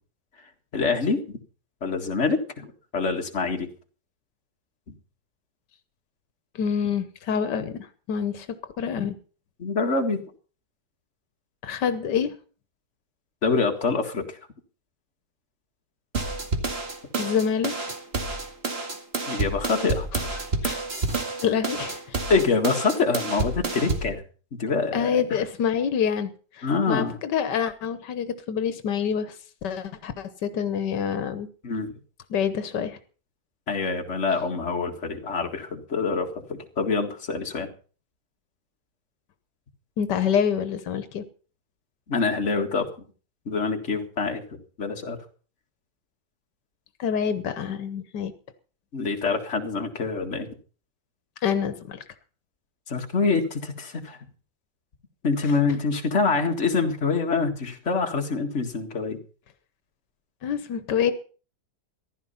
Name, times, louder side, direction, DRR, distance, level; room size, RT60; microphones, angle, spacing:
voice 1, 0.7-1.4 1.8-3.7 9.6-10.2 13.4-14.2 19.3-20.1 22.3-24.2 24.6-25.2 26.6-27.1 31.6-31.9 33.7-37.7 42.1-42.9 43.5-44.4 44.8-45.2 48.9-50.5 52.9-54.2 55.2-59.2, left 4 dB, 45° left, 3 dB, 2.2 m, -25 dB
voice 2, 6.6-8.5 8.8-9.2 11.6-12.3 17.2-17.7 20.1-20.2 20.6-20.8 21.4-22.2 24.9-29.4 29.6-31.5 32.3-33.0 40.0-41.2 47.0-48.3 51.4-52.0 60.4-61.1, left 7 dB, 85° left, 11 dB, 1.7 m, -26 dB
sound 1, 16.1-24.1, right 3 dB, 35° right, 2.3 m, -29 dB
15.0 x 11.5 x 5.7 m, 0.39 s
omnidirectional pair, 1.8 m